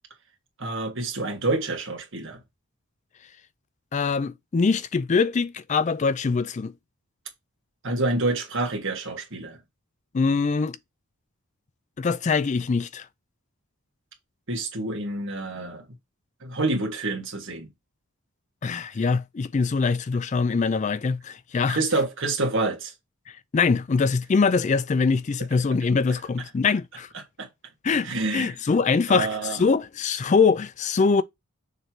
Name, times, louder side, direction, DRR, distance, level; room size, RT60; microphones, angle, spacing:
voice 1, 0.6-2.4 7.8-9.6 14.5-15.8 16.4-17.7 21.7-22.9 27.4-27.5 28.0-28.5 29.1-29.6, right 2 dB, 55° right, 1.8 m, -27 dB
voice 2, 3.9-6.7 10.1-10.8 12.0-13.1 18.6-21.8 23.3-27.1 27.8-31.2, left 4 dB, 30° left, 0.3 m, -23 dB
6.6 x 3.3 x 4.5 m
head